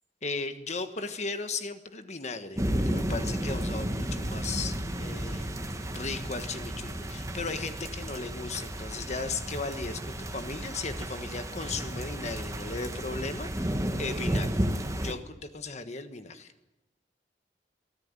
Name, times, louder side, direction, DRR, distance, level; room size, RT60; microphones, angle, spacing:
voice 1, 0.2-14.6 15.0-16.5, left 3 dB, 40° left, 10 dB, 1.4 m, -36 dB
sound 1, 2.6-15.1, right 1 dB, 20° right, 1.5 m, -33 dB
24.0 x 15.0 x 9.6 m, 0.95 s
head